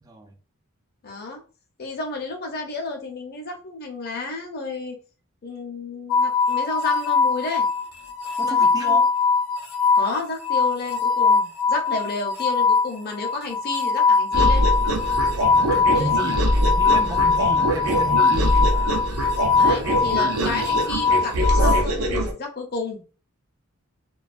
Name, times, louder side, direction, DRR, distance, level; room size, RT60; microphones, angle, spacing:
voice 1, 0.0-0.3 8.4-9.0 15.7-19.0, right 2 dB, 15° right, 0.3 m, -33 dB
voice 2, 1.0-1.4 1.8-5.0 5.4-7.7 8.4-9.0 9.9-14.6 15.9-16.1 19.6-23.0, left 3 dB, 45° left, 0.6 m, -32 dB
sound 1, 6.1-21.8, left 5 dB, 85° left, 0.6 m, -21 dB
sound 2, 14.3-22.3, right 1 dB, 85° right, 0.5 m, -23 dB
2.3 x 2.3 x 2.4 m
head